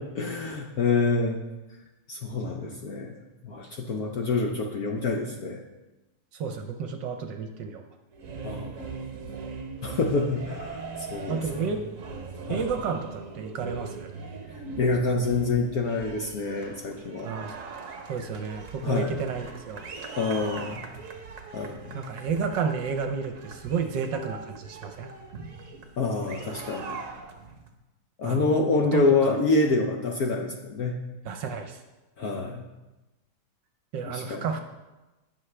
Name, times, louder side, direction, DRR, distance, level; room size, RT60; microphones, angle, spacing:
voice 1, 0.0-1.4 2.1-3.2 3.4-5.6 8.4-8.9 9.8-11.7 12.4-12.6 14.8-17.3 18.8-19.1 20.2-20.8 21.5-22.0 26.0-27.0 28.2-31.0 32.2-32.6 34.0-34.4, left 3 dB, 60° left, 2 dB, 1.0 m, -27 dB
voice 2, 6.3-7.8 11.3-11.8 12.5-14.1 17.2-17.5 18.1-19.9 21.9-25.1 28.2-28.5 28.8-29.3 31.2-31.8 33.9-34.6, right 5 dB, 65° right, 6 dB, 1.3 m, -31 dB
sound 1, 8.1-27.7, right 4 dB, 50° right, 1.0 m, -40 dB
18.0 x 6.3 x 3.3 m, 1.1 s
omnidirectional pair, 2.4 m